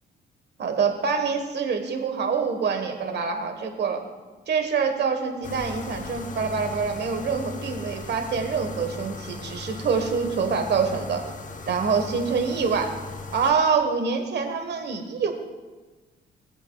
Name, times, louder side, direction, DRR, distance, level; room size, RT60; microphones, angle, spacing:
voice 1, 0.6-4.0 4.5-11.2 11.7-13.0 13.3-15.3, right 5 dB, 60° right, 5 dB, 1.4 m, -25 dB
sound 1, 5.4-13.5, left 3 dB, 40° left, 0.9 m, -38 dB
17.5 x 7.7 x 2.4 m, 1.3 s
cardioid pair, 90°, 20 cm